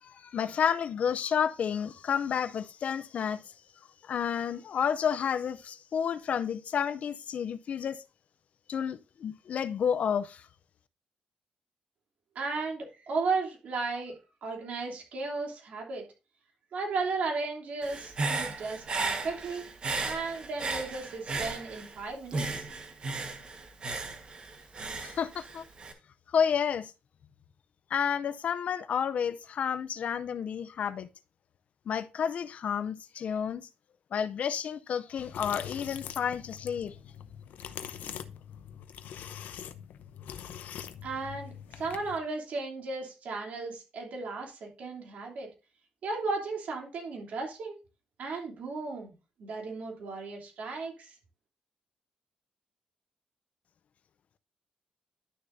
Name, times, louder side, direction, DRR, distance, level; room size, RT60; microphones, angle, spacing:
voice 1, 0.0-3.4 4.0-8.0 8.7-10.4 25.0-25.6 26.3-26.9 27.9-31.1 31.9-33.7 34.1-36.9, left 7 dB, 55° left, 0.5 m, -30 dB
voice 2, 12.3-14.1 14.4-16.1 16.7-19.7 20.0-22.6 41.0-45.5 46.0-47.8 48.2-49.1 49.4-51.1, right 4 dB, 60° right, 3.1 m, -35 dB
Human voice / Breathing, 17.8-22.0 22.3-25.9, right 3 dB, 35° right, 1.3 m, -35 dB
sound 1, 35.2-42.2, left 9 dB, 90° left, 0.7 m, -43 dB
11.5 x 6.7 x 2.6 m
cardioid pair, 145°, 3 cm